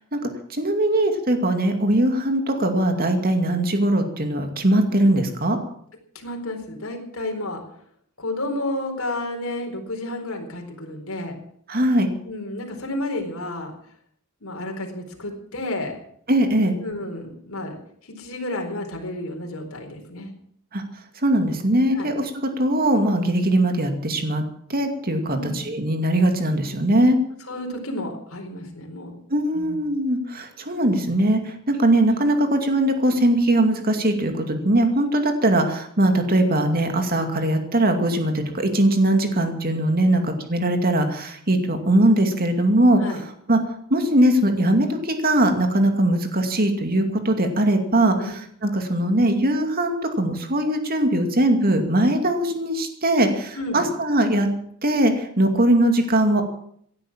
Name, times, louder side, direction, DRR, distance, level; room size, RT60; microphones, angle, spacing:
voice 1, 0.5-5.6 11.7-12.1 16.3-16.8 20.7-20.8 21.2-24.4 24.7-27.2 29.3-43.2 43.5-43.6 43.9-54.5 54.8-56.4, right 1 dB, 45° right, 5 dB, 2.4 m, -20 dB
voice 2, 6.1-7.6 8.2-11.4 12.3-13.7 14.4-16.0 16.8-17.8 18.1-20.3 22.0-22.1 25.3-25.6 27.5-29.1 29.5-29.8 40.0-40.2 43.0-43.2 48.2-48.3 53.5-53.9, left 1 dB, 70° left, 2 dB, 4.5 m, -31 dB
17.0 x 11.0 x 7.5 m, 0.64 s
head